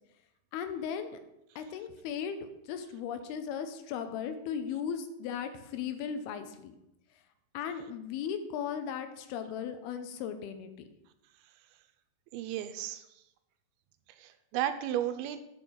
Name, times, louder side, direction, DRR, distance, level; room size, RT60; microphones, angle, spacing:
voice 1, 0.5-1.2 1.6-6.8 7.5-10.7, left 7 dB, 85° left, 8 dB, 2.8 m, -37 dB
voice 2, 12.3-13.1 14.2-15.4, right 11 dB, 85° right, 9 dB, 2.5 m, -33 dB
9.8 x 6.2 x 5.0 m, 0.87 s
omnidirectional pair, 4.4 m